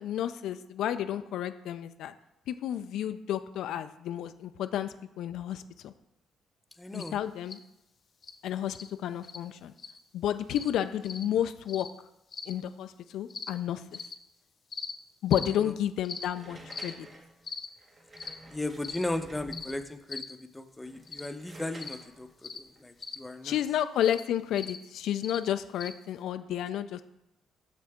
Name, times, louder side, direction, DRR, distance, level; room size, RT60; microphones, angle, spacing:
voice 1, 0.0-2.1 2.5-5.9 6.9-7.6 8.4-8.8 9.0-9.7 10.1-11.9 12.5-14.0 15.2-17.1 23.4-27.0, left 10 dB, 75° left, 10 dB, 0.3 m, -31 dB
voice 2, 6.8-7.2 18.5-23.6, left 1 dB, 15° left, 7 dB, 0.7 m, -36 dB
sound 1, 6.9-7.1 7.5-7.6 8.2-8.3 8.7-8.9 9.2-9.4 9.8-10.0 10.5-10.7 11.0-11.2 11.7-11.9 12.3-12.5 13.3-13.5 13.9-14.1 14.7-14.9 15.3-15.5 16.0-16.2 16.7-16.9 17.4-17.7 18.2-18.3 18.8-19.0 19.5-19.7 20.1-20.3 21.1-21.3 21.8-22.0 22.4-22.6 23.0-23.2 24.0-24.2 24.6-24.8 25.2-25.4 25.8-25.9, left 5 dB, 45° left, 0.7 m, -39 dB
sound 2, 16.3-20.0 20.7-23.6, right 1 dB, 35° right, 1.2 m, -50 dB
6.6 x 6.3 x 3.5 m, 0.88 s
supercardioid pair, 70°, 0 cm